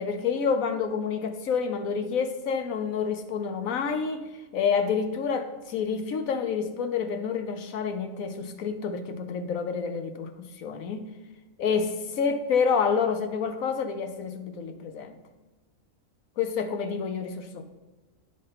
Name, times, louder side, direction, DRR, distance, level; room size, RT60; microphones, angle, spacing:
voice 1, 0.0-4.2 4.5-11.0 11.6-15.2 16.4-17.6, left 6 dB, 85° left, 8 dB, 1.3 m, -28 dB
9.6 x 5.0 x 5.7 m, 1.2 s
omnidirectional pair, 1.4 m